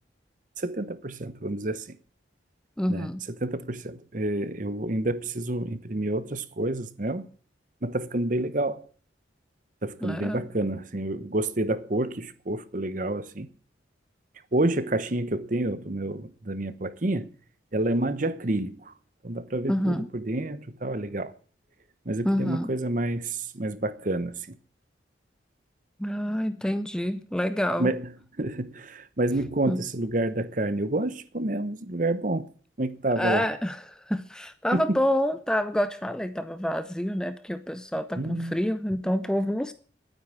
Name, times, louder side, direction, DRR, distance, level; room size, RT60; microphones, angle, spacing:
voice 1, 0.6-2.0 2.9-7.3 7.8-8.8 9.8-13.5 14.5-17.3 17.7-18.9 19.2-21.3 22.0-24.6 27.8-28.1 28.4-32.5 32.8-33.5 34.7-34.8 38.2-38.6, right 1 dB, 45° right, 1.0 m, -29 dB
voice 2, 2.8-3.2 10.0-10.5 19.7-20.1 22.2-22.7 26.0-27.9 29.7-29.8 33.2-33.8 34.1-39.7, equal, 5° left, 0.6 m, -27 dB
12.0 x 9.5 x 7.4 m
head